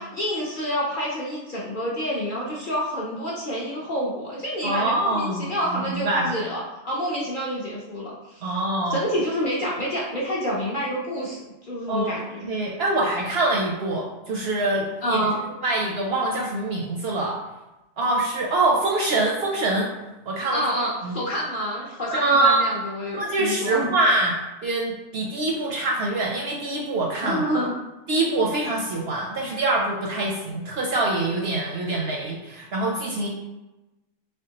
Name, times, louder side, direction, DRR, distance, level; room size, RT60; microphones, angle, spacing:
voice 1, 0.0-8.5 8.9-12.4 15.0-15.4 20.5-24.0 27.2-27.7, equal, 50° left, -5 dB, 0.7 m, -28 dB
voice 2, 4.6-6.3 8.4-9.0 11.9-12.1 12.4-15.3 15.6-17.4 18.0-19.9 20.3-21.1 22.1-22.6 23.1-24.3 24.6-27.4 28.1-33.3, right 2 dB, 65° right, -1 dB, 0.7 m, -24 dB
3.4 x 3.4 x 2.8 m, 1.0 s
omnidirectional pair, 1.4 m